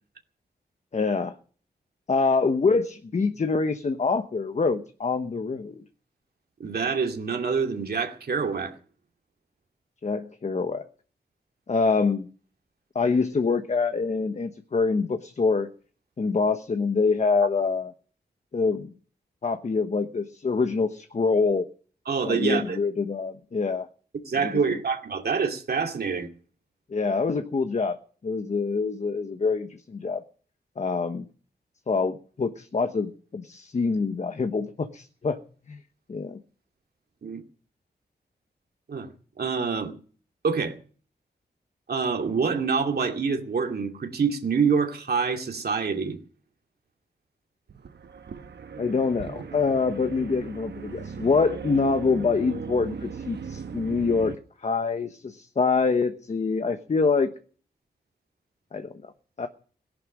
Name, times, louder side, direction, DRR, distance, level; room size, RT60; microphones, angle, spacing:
voice 1, 0.9-1.3 2.1-5.8 10.0-10.9 11.7-12.3 12.9-15.7 16.2-17.9 18.5-18.9 19.4-21.7 22.2-23.9 24.3-24.6 26.9-28.0 28.2-30.2 30.8-31.2 31.9-35.4 35.7-35.8 36.1-36.4 48.8-54.4 54.6-57.3 58.7-59.1 59.4-59.5, left 4 dB, 45° left, 1.1 m, -25 dB
voice 2, 6.6-8.7 22.1-22.8 24.3-26.3 37.2-37.4 38.9-39.1 39.4-39.9 40.4-40.8 41.9-46.2, right 5 dB, 70° right, 2.4 m, -26 dB
sound 1, 47.7-54.4, right 6 dB, 90° right, 1.1 m, -38 dB
18.0 x 11.5 x 6.4 m
wide cardioid pair, 145°, 17 cm